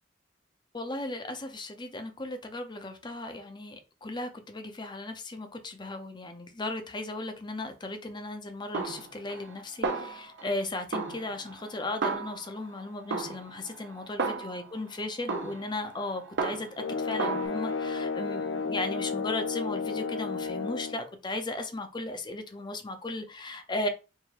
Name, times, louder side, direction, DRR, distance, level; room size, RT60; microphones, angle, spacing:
voice 1, 0.7-23.9, left 2 dB, 25° left, 0.6 m, -36 dB
Snare drum, 8.7-9.6 9.8-10.6 10.9-12.7 13.1-14.8 15.3-16.9 17.2-17.5, right 4 dB, 60° right, 0.7 m, -34 dB
sound 1, 16.8-21.0, left 4 dB, 75° left, 0.5 m, -32 dB
4.7 x 2.6 x 2.9 m
head